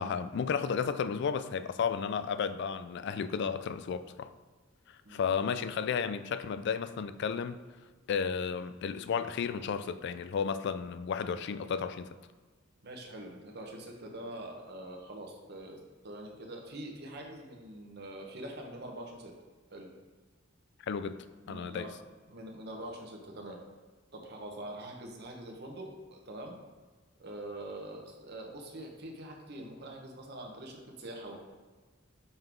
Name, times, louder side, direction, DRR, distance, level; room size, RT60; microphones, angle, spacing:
voice 1, 0.0-4.3 4.9-7.6 8.1-12.1 20.9-21.2 21.5-21.9, left 6 dB, 60° left, 0.3 m, -33 dB
voice 2, 12.8-15.8 16.0-19.3 19.7-19.9 21.5-21.9 22.3-23.6 24.1-26.5 27.2-31.4, right 1 dB, 55° right, 1.0 m, -44 dB
5.5 x 3.8 x 4.5 m
head